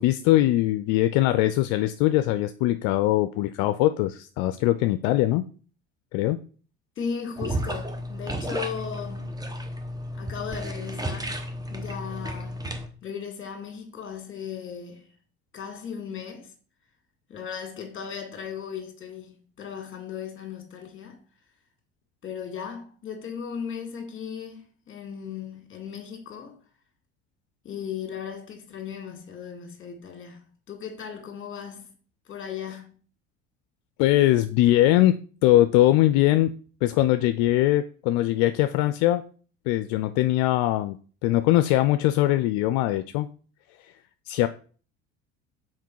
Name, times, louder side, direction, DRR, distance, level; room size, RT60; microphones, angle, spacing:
voice 1, 0.0-5.4 6.1-6.4 34.0-36.5 36.8-39.2 39.7-41.0 41.2-43.3 43.8-43.9 44.3-44.5, left 15 dB, 75° left, 0.5 m, -21 dB
voice 2, 7.0-9.3 10.2-11.4 11.7-12.6 13.0-15.1 15.5-16.5 17.3-21.2 22.2-26.6 27.6-31.9 32.3-32.9, left 7 dB, 40° left, 2.1 m, -37 dB
sound 1, 7.4-12.9, equal, 10° right, 0.9 m, -33 dB
5.9 x 4.5 x 4.6 m
supercardioid pair, 80°, 32 cm